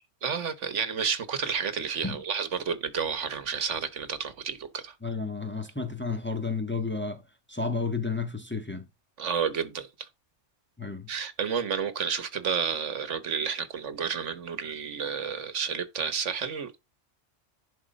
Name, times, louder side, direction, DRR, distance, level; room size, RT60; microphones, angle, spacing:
voice 1, 0.2-4.9 9.2-10.1 11.1-16.8, right 6 dB, 75° right, 1.4 m, -31 dB
voice 2, 5.0-7.2 7.5-8.9 10.8-11.1, left 4 dB, 10° left, 1.6 m, -31 dB
11.0 x 4.3 x 5.2 m
omnidirectional pair, 1.2 m